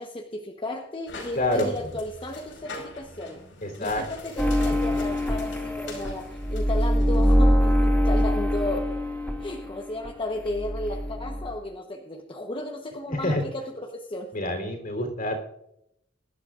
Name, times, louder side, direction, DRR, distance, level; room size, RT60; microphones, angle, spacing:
voice 1, 0.0-3.4 3.8-8.9 9.4-14.3, left 1 dB, 25° left, 2 dB, 1.0 m, -34 dB
sound 1, 1.1-7.3, left 2 dB, 90° left, 5.0 m, -43 dB
voice 2, 1.3-1.7 3.6-4.0 4.6-4.7 13.1-13.4 14.3-15.4, left 1 dB, 50° left, 4 dB, 3.5 m, -27 dB
sound 2, 4.4-10.1 10.3-11.5, equal, 10° left, 3.4 m, -24 dB
23.0 x 11.5 x 2.5 m, 0.80 s
head